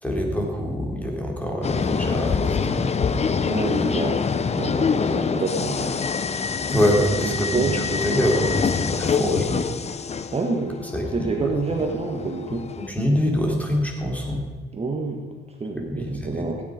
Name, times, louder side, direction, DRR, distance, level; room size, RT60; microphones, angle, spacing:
voice 1, 0.0-2.9 6.7-9.7 10.9-11.5 12.8-14.5 15.9-16.5, equal, 5° left, 0 dB, 3.6 m, -25 dB
sound 1, 1.6-12.9, left 5 dB, 35° left, 0.8 m, -25 dB
voice 2, 3.4-6.0 7.2-7.8 9.2-9.4 10.3-10.8 11.1-12.7 14.7-16.6, right 3 dB, 30° right, 2 dB, 1.7 m, -28 dB
16.5 x 9.8 x 5.2 m, 1.3 s
cardioid pair, 90°, 20 cm